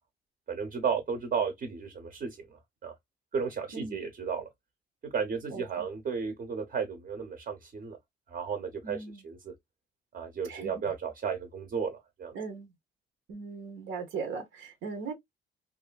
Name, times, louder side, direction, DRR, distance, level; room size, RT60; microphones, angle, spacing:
voice 1, 0.5-2.9 3.3-4.5 5.0-8.0 8.3-9.5 10.1-12.3, right 6 dB, 45° right, 0.7 m, -34 dB
voice 2, 5.5-5.9 8.8-9.2 10.5-10.7 12.3-12.7 13.3-15.1, right 5 dB, 85° right, 0.8 m, -38 dB
2.6 x 2.4 x 2.2 m
cardioid pair, 90°, 20 cm